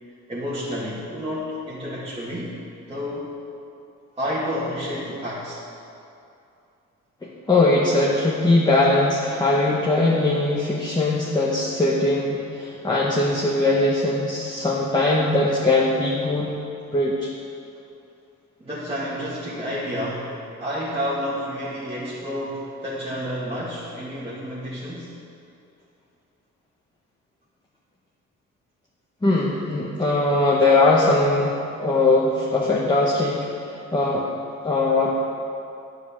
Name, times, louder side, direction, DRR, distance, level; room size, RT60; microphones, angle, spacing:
voice 1, 0.3-2.6 2.9-3.3 4.2-5.6 18.6-25.1, equal, 20° right, -8 dB, 1.7 m, -30 dB
voice 2, 7.2-16.5 16.9-17.3 29.2-31.5 31.8-34.3 34.6-35.1, left 2 dB, 15° left, -4 dB, 1.1 m, -20 dB
9.8 x 4.8 x 7.1 m, 2.7 s
cardioid pair, 90°, 30 cm